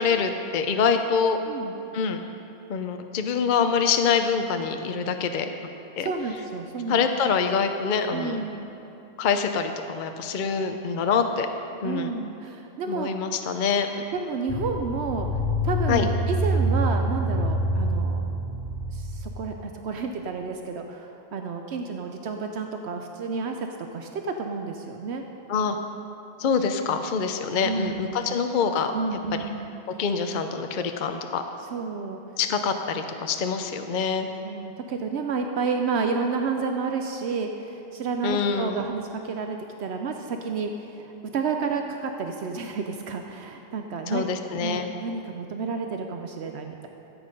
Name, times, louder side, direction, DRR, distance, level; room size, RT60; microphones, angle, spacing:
voice 1, 0.0-1.4 1.9-2.2 2.7-5.5 6.0-6.1 6.9-8.4 9.2-11.5 11.8-12.1 12.9-13.9 15.9-16.1 25.5-25.8 26.4-28.9 30.0-31.4 32.4-34.3 38.2-38.8 44.1-44.9, left 6 dB, 55° left, 6 dB, 0.7 m, -25 dB
voice 2, 1.5-1.8 6.0-7.0 8.1-8.7 11.8-13.1 14.1-15.3 15.6-18.2 18.9-23.7 23.9-25.2 27.6-28.4 28.9-29.7 31.7-32.2 34.4-44.2 44.5-46.9, right 4 dB, 75° right, 4 dB, 0.9 m, -30 dB
sound 1, 14.5-19.6, right 1 dB, 30° left, 1.1 m, -26 dB
13.5 x 8.7 x 5.2 m, 2.9 s
omnidirectional pair, 1.1 m